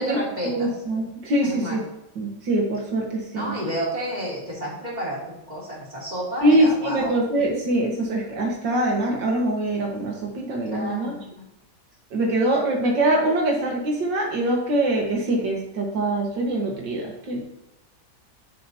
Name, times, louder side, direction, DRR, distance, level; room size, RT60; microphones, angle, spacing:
voice 1, 0.0-0.8 1.4-1.8 3.3-5.2 5.5-7.2 10.7-11.5, equal, 25° right, -4 dB, 3.5 m, -31 dB
voice 2, 0.5-1.8 2.2-3.5 6.4-11.2 12.1-17.4, right 1 dB, 85° right, -1 dB, 2.4 m, -23 dB
10.5 x 7.2 x 3.0 m, 0.86 s
omnidirectional pair, 1.9 m